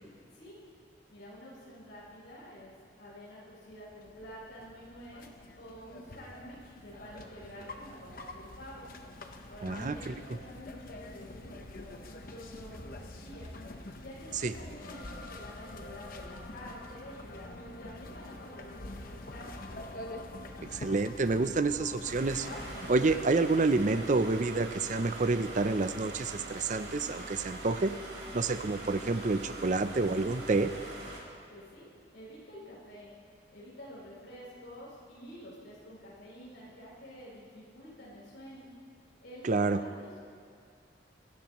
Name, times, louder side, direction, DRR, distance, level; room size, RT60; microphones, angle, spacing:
voice 1, 1.1-5.3 5.6-8.8 9.5-13.5 14.0-19.6 31.5-31.9 32.1-33.1 33.5-38.7 39.2-40.2, equal, 90° left, -7 dB, 4.9 m, -49 dB
sound 1, 3.6-23.2, left 2 dB, 50° left, 1.0 m, -45 dB
voice 2, 9.6-10.1 14.4-14.5 20.6-22.5 22.9-27.9 28.3-30.7 39.4-39.8, right 3 dB, 45° right, 11 dB, 0.6 m, -28 dB
sound 2, 22.0-31.2, right 2 dB, 85° right, 4.0 m, -43 dB
25.5 x 13.5 x 3.1 m, 2.2 s
head